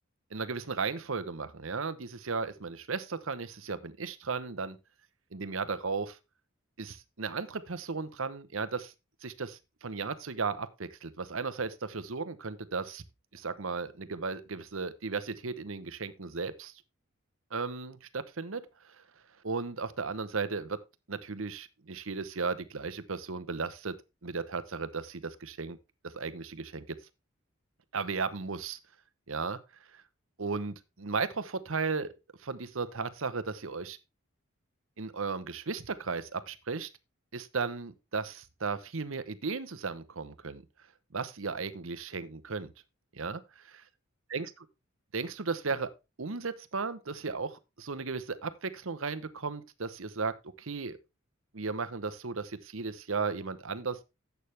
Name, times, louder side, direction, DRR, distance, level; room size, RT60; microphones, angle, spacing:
voice 1, 0.3-4.8 5.3-6.2 6.8-8.9 9.2-13.0 13.3-16.7 17.5-19.0 19.4-20.8 21.1-23.9 24.2-25.8 26.0-27.0 27.9-28.8 29.3-29.6 29.9-30.0 30.4-32.1 32.4-34.0 35.0-36.9 37.3-40.6 41.1-42.7 43.1-43.4 44.3-44.5 45.1-45.9 46.2-51.0 51.5-54.0, right 4 dB, 70° right, 0.9 m, -35 dB
11.5 x 8.2 x 3.4 m
head